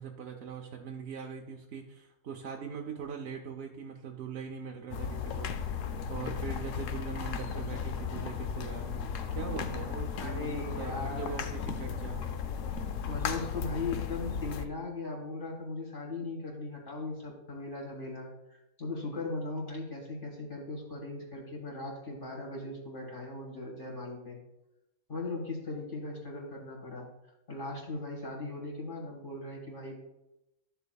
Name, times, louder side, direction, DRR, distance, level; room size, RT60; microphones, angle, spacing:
voice 1, 0.0-5.8 6.1-9.0 9.3-12.2, right 7 dB, 60° right, 1 dB, 0.8 m, -41 dB
sound 1, 4.9-14.7, left 6 dB, 70° left, 0.9 m, -35 dB
voice 2, 10.2-11.5 13.1-24.4 25.1-27.1 27.5-30.0, left 3 dB, 35° left, -3 dB, 2.0 m, -38 dB
12.5 x 6.8 x 2.3 m, 0.92 s
omnidirectional pair, 1.5 m